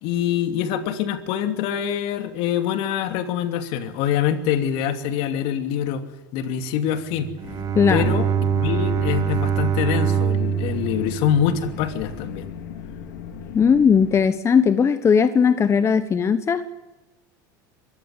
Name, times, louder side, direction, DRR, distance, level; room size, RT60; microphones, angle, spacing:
voice 1, 0.0-6.0 6.3-7.3 7.9-12.5, left 9 dB, 60° left, 7 dB, 2.8 m, -25 dB
Bowed string instrument, 7.1-12.4, right 8 dB, 35° right, 1.2 m, -24 dB
sound 1, 7.4-14.2, left 8 dB, 80° left, 3.3 m, -37 dB
voice 2, 7.7-8.1 13.5-16.6, left 6 dB, 25° left, 11 dB, 1.2 m, -18 dB
23.5 x 14.5 x 9.8 m, 1.1 s
hypercardioid pair, 100°, 10 cm